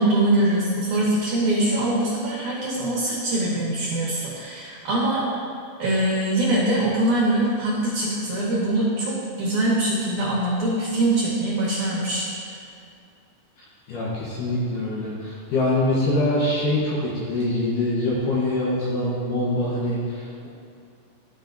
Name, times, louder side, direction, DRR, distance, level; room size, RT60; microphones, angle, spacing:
voice 1, 0.0-5.3 5.8-12.3, right 1 dB, 65° right, -6 dB, 2.0 m, -23 dB
voice 2, 13.9-20.5, left 1 dB, 75° left, -6 dB, 1.9 m, -24 dB
13.5 x 4.9 x 2.6 m, 2.4 s
omnidirectional pair, 5.2 m